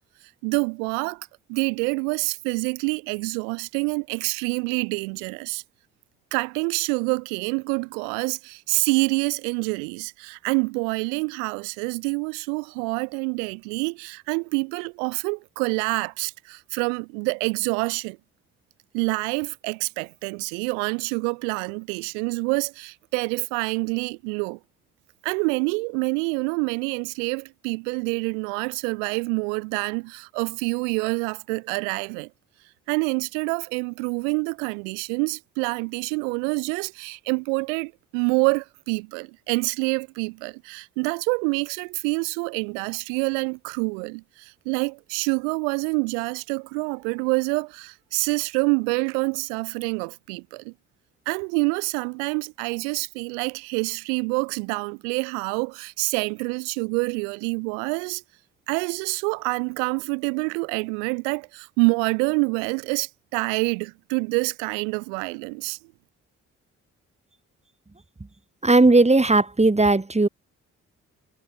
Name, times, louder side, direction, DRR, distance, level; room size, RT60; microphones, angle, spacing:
voice 1, 0.4-5.6 6.3-18.2 18.9-24.6 25.2-32.3 32.9-50.7 51.3-58.2 58.7-65.8, right 37 dB, 85° right, 2.9 m, -27 dB
voice 2, 68.6-70.3, right 2 dB, 20° right, 2.7 m, -17 dB
hypercardioid pair, 45°, 36 cm